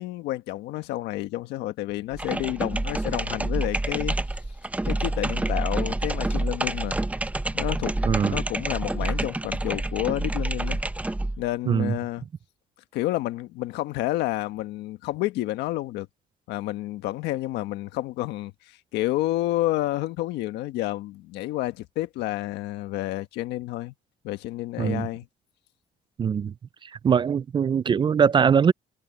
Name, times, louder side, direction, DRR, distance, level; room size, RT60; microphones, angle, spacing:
voice 1, 0.0-4.2 4.8-7.0 7.5-10.8 11.4-12.2 12.9-16.1 16.5-18.5 18.9-23.9 24.2-25.3, left 16 dB, 85° left, 1.5 m, -30 dB
sound 1, 2.1-11.4, right 2 dB, 10° right, 0.7 m, -28 dB
voice 2, 8.1-8.4 11.7-11.9 24.8-25.1 26.2-26.5 26.8-28.7, right 7 dB, 30° right, 0.4 m, -22 dB
cardioid pair, 110°, 17 cm